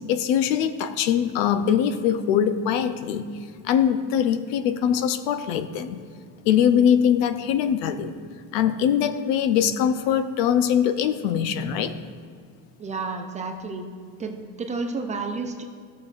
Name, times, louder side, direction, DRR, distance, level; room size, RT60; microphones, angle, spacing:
voice 1, 0.1-3.3 3.6-6.0 6.4-8.2 8.5-11.9, left 9 dB, 75° left, 10 dB, 0.6 m, -22 dB
voice 2, 12.8-13.9 14.2-15.6, right 3 dB, 20° right, 5 dB, 0.3 m, -31 dB
14.5 x 6.5 x 2.4 m, 2.1 s
cardioid pair, 155°, 37 cm